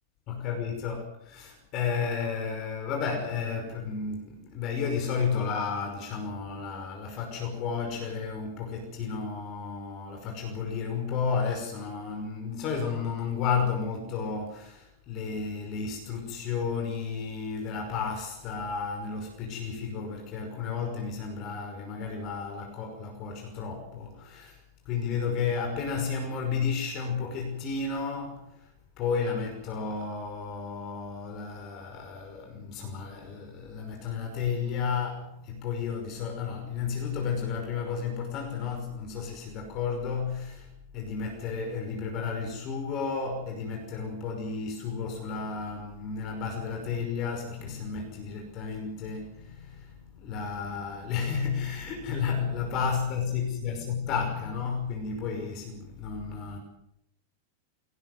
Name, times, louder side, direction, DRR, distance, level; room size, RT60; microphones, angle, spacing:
voice 1, 0.3-24.6 24.8-28.7 29.0-56.6, left 5 dB, 40° left, 5.6 m, -32 dB
23.5 x 18.0 x 8.1 m
figure-of-eight pair, 90°, 0 cm